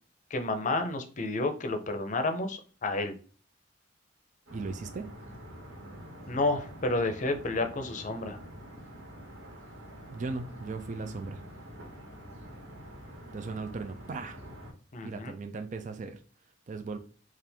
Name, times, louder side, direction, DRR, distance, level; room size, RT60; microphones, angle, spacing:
voice 1, 0.3-3.1 6.3-8.4 14.9-15.3, left 2 dB, 40° left, 0.6 m, -30 dB
voice 2, 4.5-5.1 10.1-11.4 13.3-14.4 15.0-16.2 16.7-17.0, right 4 dB, 40° right, 0.4 m, -37 dB
sound 1, 4.5-14.7, equal, 85° right, 1.5 m, -46 dB
4.3 x 2.4 x 3.4 m
head